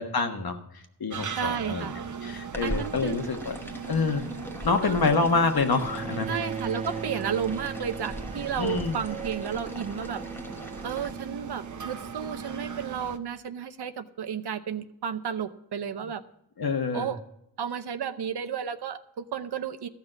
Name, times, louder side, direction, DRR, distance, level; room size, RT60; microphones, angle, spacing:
voice 1, 0.0-1.9 2.2-3.6 3.9-4.2 4.6-6.3 8.6-9.0 16.6-17.1, left 4 dB, 70° left, 6 dB, 1.5 m, -27 dB
sound 1, 1.1-13.2, right 6 dB, 50° right, 0.8 m, -40 dB
voice 2, 1.4-1.9 2.6-3.2 4.8-5.0 6.3-10.2 10.8-16.2 16.9-17.2 17.6-19.9, right 7 dB, 85° right, 9 dB, 0.8 m, -32 dB
sound 2, 2.5-11.1, equal, 5° left, 1.1 m, -40 dB
Bowed string instrument, 5.8-11.9, right 5 dB, 20° right, 0.4 m, -39 dB
13.5 x 5.8 x 7.8 m, 0.81 s
wide cardioid pair, 85°, 38 cm